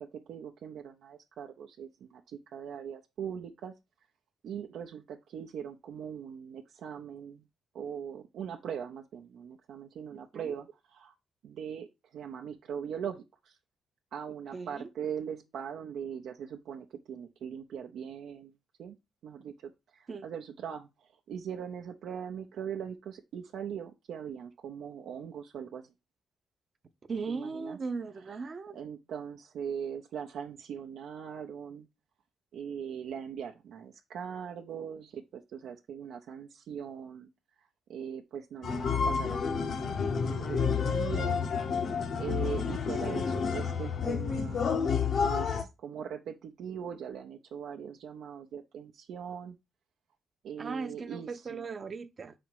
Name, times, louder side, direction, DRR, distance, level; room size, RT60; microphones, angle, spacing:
voice 1, 0.0-3.7 4.4-7.4 7.7-11.1 11.4-13.6 14.1-18.5 18.8-19.0 19.2-25.9 27.3-27.8 28.7-31.9 32.5-37.3 37.9-39.9 40.2-41.5 41.9-44.8 45.1-49.6 50.4-51.6, right 8 dB, 80° right, 0.6 m, -41 dB
voice 2, 14.5-14.9 20.1-20.3 27.1-28.8 43.0-43.4 50.6-52.3, right 4 dB, 40° right, 0.7 m, -38 dB
sound 1, 38.6-45.6, left 6 dB, 60° left, 0.8 m, -30 dB
5.0 x 4.2 x 4.6 m
cardioid pair, 95°, 0 cm